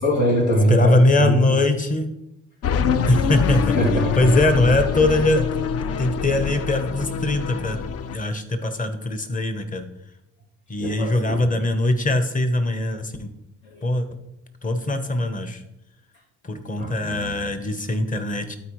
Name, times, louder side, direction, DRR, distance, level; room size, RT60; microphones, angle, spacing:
voice 1, 0.0-1.4 3.7-4.4 10.8-11.4 13.6-13.9 16.8-17.5, equal, 85° left, -4 dB, 2.7 m, -23 dB
voice 2, 0.7-2.1 3.1-3.8 4.2-5.4 6.0-7.8 8.1-9.9 10.7-13.3 13.8-14.1 14.6-15.6 16.4-18.6, left 2 dB, 25° left, 8 dB, 1.0 m, -21 dB
sound 1, 2.6-8.2, left 6 dB, 50° left, 0.5 m, -24 dB
12.5 x 4.5 x 3.1 m, 0.83 s
cardioid pair, 90°, 30 cm